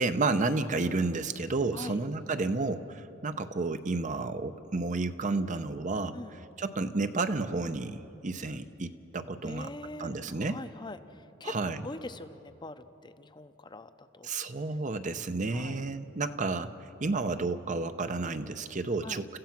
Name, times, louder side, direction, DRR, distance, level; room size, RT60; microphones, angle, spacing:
voice 1, 0.0-6.2 6.6-9.7 10.0-10.6 11.4-11.8 14.2-16.7 17.0-19.3, right 3 dB, 40° right, 10 dB, 0.7 m, -31 dB
voice 2, 9.4-11.6 11.8-14.3 15.5-15.8 19.0-19.2, left 2 dB, 25° left, 11 dB, 0.7 m, -43 dB
29.5 x 15.0 x 5.9 m, 2.8 s
head